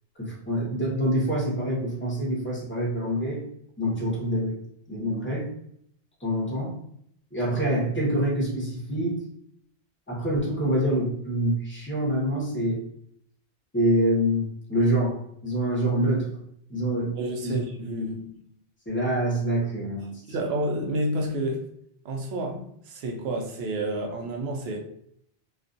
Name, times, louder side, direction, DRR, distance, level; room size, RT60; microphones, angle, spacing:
voice 1, 0.2-3.4 3.8-4.6 4.9-5.5 6.2-6.7 7.3-9.2 10.1-12.8 13.7-15.2 15.4-16.3 16.7-17.2 17.4-17.6 18.9-20.1, right 1 dB, 15° left, -4 dB, 0.7 m, -26 dB
voice 2, 17.2-18.4 20.3-21.7 22.0-24.8, right 1 dB, 70° right, 2 dB, 0.8 m, -30 dB
2.4 x 2.2 x 2.5 m, 0.70 s
omnidirectional pair, 1.2 m